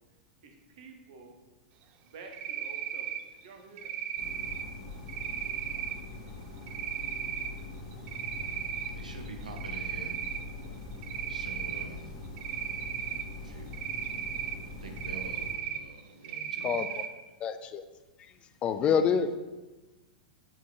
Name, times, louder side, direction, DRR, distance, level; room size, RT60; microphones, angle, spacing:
voice 1, 0.4-1.4 2.0-3.9, right 3 dB, 55° right, 4 dB, 1.2 m, -50 dB
Cricket, 2.3-3.2 3.8-4.6 5.1-5.9 6.7-7.5 7.9-8.9 9.3-10.4 11.0-11.8 12.4-13.2 13.7-14.6 15.0-15.8 16.2-17.1, right 10 dB, 40° right, 0.5 m, -35 dB
sound 1, 4.2-15.5, left 2 dB, 45° left, 1.5 m, -43 dB
voice 2, 8.6-10.1 11.3-12.1 13.2-13.7 14.8-17.1, right 3 dB, 75° right, 3 dB, 1.0 m, -46 dB
voice 3, 17.4-17.8 18.2-18.3 18.6-19.3, left 7 dB, 25° left, 10 dB, 0.4 m, -27 dB
7.4 x 4.5 x 4.0 m, 1.2 s
figure-of-eight pair, 95°, 4 cm